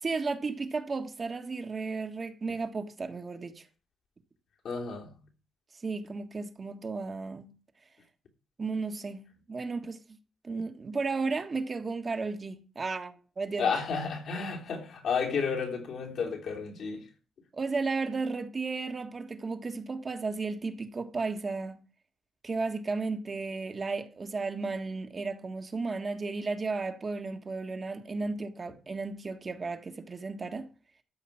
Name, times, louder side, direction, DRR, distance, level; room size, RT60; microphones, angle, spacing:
voice 1, 0.0-3.6 5.8-7.5 8.6-9.2 9.5-10.2 10.4-13.7 17.5-21.8 22.4-30.7, right 4 dB, 30° right, 1.5 m, -34 dB
voice 2, 4.6-5.1 13.6-17.0, left 5 dB, 65° left, 3.4 m, -32 dB
13.5 x 5.1 x 8.6 m
cardioid pair, 125°, 0 cm